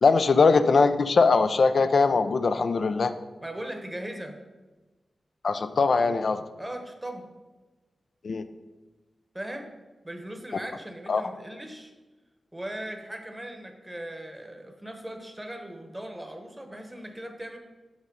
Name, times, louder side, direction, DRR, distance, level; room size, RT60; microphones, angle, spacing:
voice 1, 0.0-3.1 5.4-6.4 8.2-8.4 11.1-11.2, left 4 dB, 65° left, 10 dB, 0.4 m, -21 dB
voice 2, 3.4-4.4 6.6-7.3 9.3-9.7 10.0-11.9 12.5-17.6, right 1 dB, 15° right, 5 dB, 0.9 m, -38 dB
5.8 x 5.6 x 5.2 m, 1.2 s
cardioid pair, 60°, 0 cm